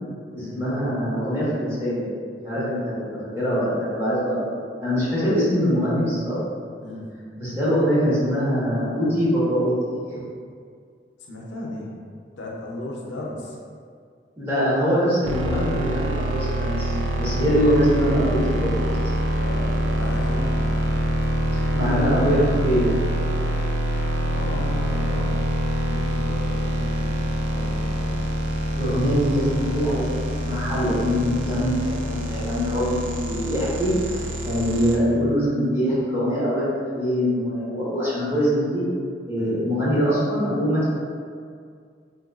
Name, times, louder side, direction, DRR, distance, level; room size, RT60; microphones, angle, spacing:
voice 1, 0.3-2.1 2.4-4.5 4.8-6.4 7.4-9.7 14.4-19.1 21.5-22.9 28.8-30.1 30.4-38.9 39.3-40.9, equal, 15° right, -11 dB, 0.9 m, -23 dB
voice 2, 11.2-11.9 12.4-13.6 19.4-20.7 24.3-25.5 25.9-28.4 28.9-29.1 39.4-39.6, left 1 dB, 80° left, -3 dB, 0.5 m, -36 dB
sound 1, 15.2-35.0, right 1 dB, 90° right, 0.4 m, -25 dB
3.7 x 2.2 x 2.3 m, 2.2 s
head